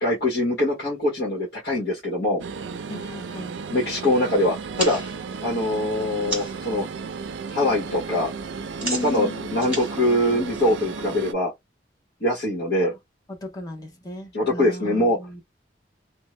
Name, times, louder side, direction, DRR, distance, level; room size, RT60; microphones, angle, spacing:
voice 1, 0.0-2.4 3.7-5.0 5.4-6.9 7.5-8.3 9.0-11.5 12.2-12.9 14.3-15.2, left 1 dB, 55° left, 1.2 m, -23 dB
sound 1, 2.4-11.3, right 5 dB, 80° right, 0.5 m, -34 dB
voice 2, 2.9-3.6 8.8-9.6 12.8-12.9 13.3-15.4, left 2 dB, 20° left, 0.8 m, -35 dB
sound 2, 4.6-6.7 7.1-7.5 7.8-11.0, right 2 dB, 5° right, 1.4 m, -34 dB
2.7 x 2.2 x 3.1 m
head